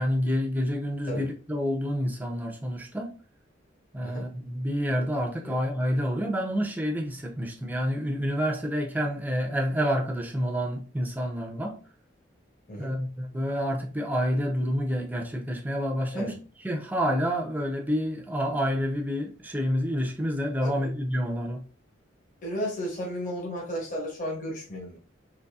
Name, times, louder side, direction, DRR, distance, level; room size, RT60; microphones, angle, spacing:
voice 1, 0.0-3.1 3.9-11.8 12.8-16.3 16.6-21.6, equal, 10° right, 0.5 m, -28 dB
voice 2, 20.6-20.9 22.4-25.0, equal, 45° left, 1.2 m, -34 dB
4.0 x 3.1 x 2.3 m
head